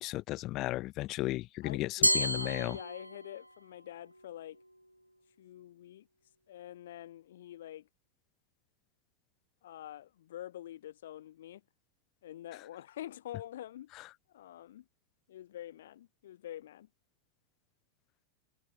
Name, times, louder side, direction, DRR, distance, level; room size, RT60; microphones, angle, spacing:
voice 1, 0.0-2.8, left 18 dB, 35° left, 0.4 m, -34 dB
voice 2, 1.6-4.6 5.4-6.1 6.5-7.9 9.6-11.6 12.2-13.9 14.3-14.8 15.3-16.9, left 12 dB, 60° left, 1.0 m, -46 dB
Glass, 2.0-3.5, equal, 90° right, 0.6 m, -30 dB
figure-of-eight pair, 90°, 0 cm